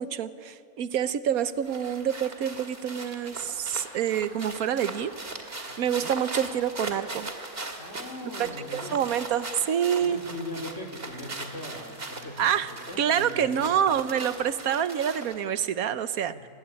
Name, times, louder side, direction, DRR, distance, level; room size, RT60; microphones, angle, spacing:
voice 1, 0.0-5.1 5.5-7.3 8.4-10.2 12.4-12.7 13.0-16.3, right 9 dB, 75° right, 13 dB, 1.3 m, -27 dB
sound 1, 1.4-15.5, right 2 dB, 40° right, 2.5 m, -39 dB
voice 2, 7.8-9.0 10.0-13.9 16.2-16.5, left 2 dB, 50° left, 4 dB, 2.9 m, -40 dB
25.5 x 20.0 x 9.9 m, 2.3 s
omnidirectional pair, 1.6 m